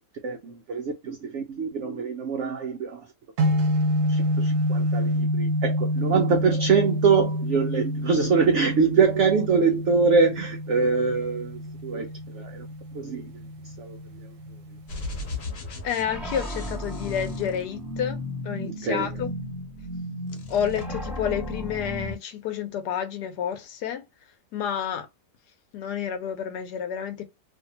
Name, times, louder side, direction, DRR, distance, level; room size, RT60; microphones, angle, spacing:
voice 1, 0.2-3.1 4.1-12.1 12.3-12.7 12.9-13.3 13.8-14.0 18.6-19.1, right 5 dB, 90° right, 0.6 m, -24 dB
sound 1, 3.4-15.4, equal, 60° right, 0.9 m, -28 dB
sound 2, 14.9-18.2 18.9-20.0 20.2-20.9, left 2 dB, 45° left, 1.0 m, -38 dB
voice 2, 15.8-18.2 18.4-19.3 20.5-24.0 24.5-25.1 25.7-27.2, left 9 dB, 70° left, 1.2 m, -29 dB
sound 3, 16.1-22.2, equal, ahead, 0.7 m, -34 dB
2.8 x 2.6 x 2.7 m
omnidirectional pair, 1.9 m